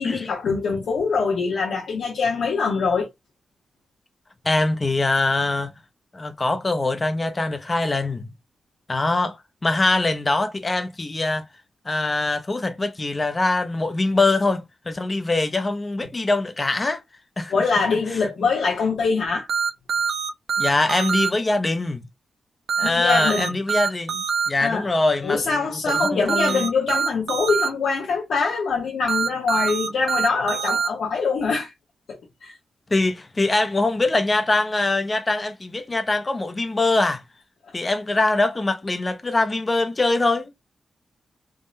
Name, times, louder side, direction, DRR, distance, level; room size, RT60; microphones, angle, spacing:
voice 1, 0.0-3.1 17.5-19.5 22.8-23.5 24.6-24.9 25.2-31.7 32.1-32.6 37.7-37.8, left 4 dB, 80° left, 0.8 m, -24 dB
voice 2, 4.4-5.8 6.1-8.3 8.9-9.4 9.6-11.4 11.9-17.0 17.4-17.5 20.6-22.1 22.8-26.7 32.9-37.2 37.7-40.5, left 2 dB, 20° left, 0.4 m, -23 dB
sound 1, 19.5-21.3 22.7-24.5 25.9-27.7 29.1-30.9, right 6 dB, 60° right, 0.5 m, -24 dB
3.5 x 2.0 x 2.5 m
wide cardioid pair, 160°, 0 cm